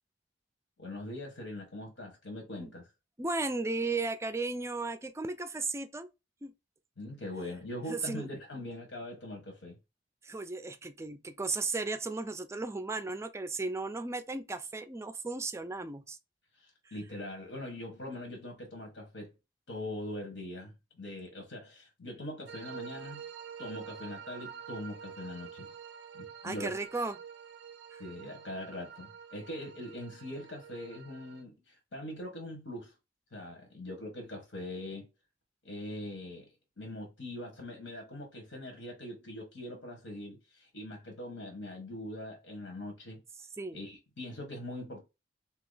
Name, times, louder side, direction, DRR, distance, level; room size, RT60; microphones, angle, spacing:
voice 1, 0.8-2.8 7.0-9.8 16.6-19.3 19.7-23.2 23.6-25.7 26.1-26.7 28.0-32.9 33.3-35.1 35.6-43.2 43.7-45.0, left 1 dB, 90° left, 1.3 m, -42 dB
voice 2, 3.2-6.1 6.4-6.5 7.9-8.3 10.2-16.2 16.9-17.0 26.4-27.2 27.9-28.0 43.6-43.8, right 3 dB, 15° right, 0.4 m, -35 dB
sound 1, 22.5-31.4, right 7 dB, 85° right, 0.5 m, -47 dB
2.9 x 2.8 x 3.9 m
head